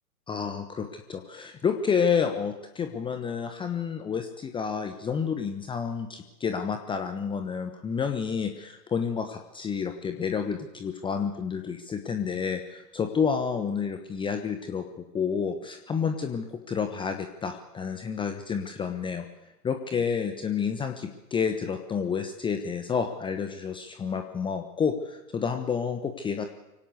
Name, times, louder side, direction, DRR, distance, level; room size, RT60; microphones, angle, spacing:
voice 1, 0.3-19.2 19.6-26.5, left 6 dB, 10° left, 6 dB, 1.1 m, -30 dB
24.5 x 17.5 x 8.2 m, 0.97 s
figure-of-eight pair, 110°, 45 cm